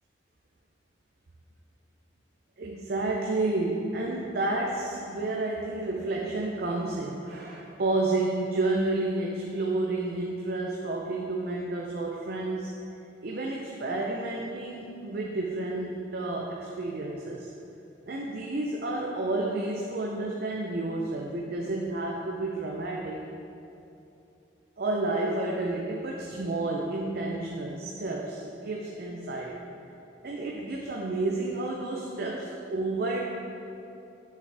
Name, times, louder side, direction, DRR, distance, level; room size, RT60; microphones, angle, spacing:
voice 1, 2.6-12.7 13.2-17.5 18.1-23.2 24.8-29.6 30.2-33.2, right 2 dB, 60° right, -1 dB, 0.6 m, -30 dB
7.4 x 6.8 x 3.4 m, 2.8 s
head